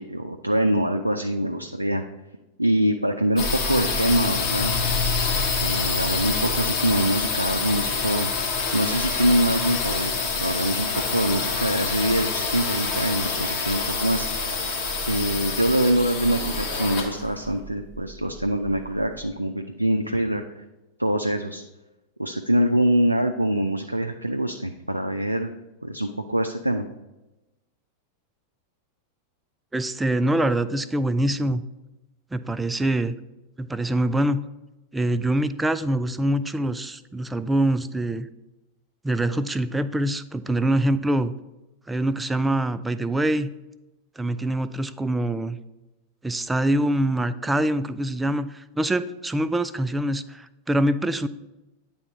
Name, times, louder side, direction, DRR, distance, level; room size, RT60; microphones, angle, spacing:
voice 1, 0.0-2.0 2.6-4.7 5.6-8.3 8.7-10.1 10.4-14.3 15.1-20.4 21.0-21.6 22.2-25.5 25.8-26.8, right 1 dB, 85° right, 5 dB, 0.3 m, -24 dB
sound 1, 3.4-19.0, left 4 dB, 35° left, 1.4 m, -26 dB
voice 2, 29.7-31.6 32.3-33.2 33.6-34.4 34.9-38.3 39.0-41.3 41.9-43.5 44.2-45.6 46.2-51.3, right 1 dB, 10° right, 13 dB, 0.3 m, -24 dB
9.4 x 3.5 x 4.0 m, 1.0 s
figure-of-eight pair, 90°, 0 cm